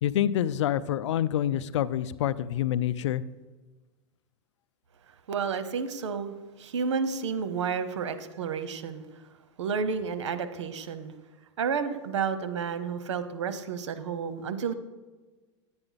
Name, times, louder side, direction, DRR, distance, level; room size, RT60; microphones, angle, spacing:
voice 1, 0.0-3.2, left 11 dB, 80° left, 17 dB, 0.5 m, -27 dB
voice 2, 5.3-9.0 9.6-11.1 11.6-14.7, right 6 dB, 85° right, 11 dB, 0.9 m, -31 dB
10.5 x 8.9 x 4.0 m, 1.3 s
hypercardioid pair, 130°, 15 cm